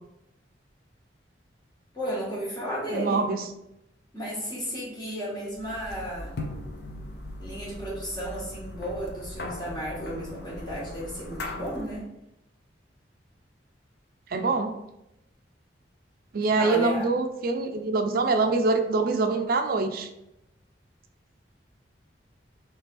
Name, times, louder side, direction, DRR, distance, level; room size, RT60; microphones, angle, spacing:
voice 1, 1.9-3.2 4.1-6.3 7.4-12.0 16.6-17.1, equal, 25° left, -7 dB, 1.6 m, -33 dB
voice 2, 2.9-3.4 14.3-14.7 16.3-20.1, right 3 dB, 50° right, 6 dB, 0.4 m, -24 dB
sound 1, 5.5-12.0, left 2 dB, 60° left, 0.5 m, -39 dB
3.4 x 3.3 x 4.3 m, 0.86 s
head